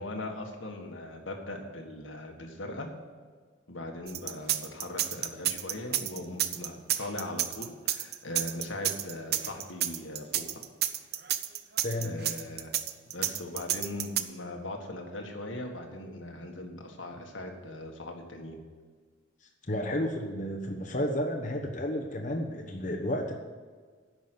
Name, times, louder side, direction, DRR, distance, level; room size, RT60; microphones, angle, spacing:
voice 1, 0.0-2.9 3.7-10.5 12.0-12.7 13.1-18.6, left 1 dB, 80° left, 2 dB, 1.7 m, -39 dB
sound 1, 4.1-14.2, right 12 dB, 55° right, 0.6 m, -30 dB
voice 2, 11.8-12.2 19.7-23.4, left 1 dB, 40° left, 1 dB, 1.1 m, -32 dB
10.5 x 6.2 x 7.9 m, 1.5 s
head